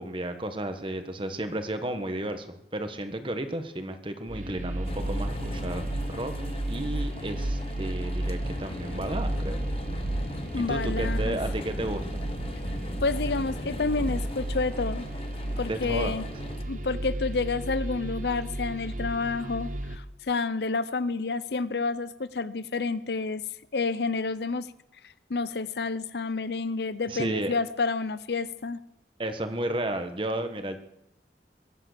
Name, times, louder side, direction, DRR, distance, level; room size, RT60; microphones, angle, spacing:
voice 1, 0.0-2.5 2.7-6.3 6.7-9.6 10.5-12.0 15.7-16.1 27.1-27.5 29.2-30.8, right 1 dB, 30° right, 8 dB, 1.5 m, -33 dB
sound 1, 4.3-20.0, right 1 dB, 50° right, 1.1 m, -33 dB
sound 2, 4.8-16.6, left 1 dB, 35° left, 1.0 m, -39 dB
voice 2, 10.5-11.4 13.0-15.1 15.6-16.2 16.7-23.4 23.7-24.7 25.3-28.8, left 4 dB, 70° left, 16 dB, 0.7 m, -29 dB
22.5 x 9.0 x 6.9 m, 0.81 s
head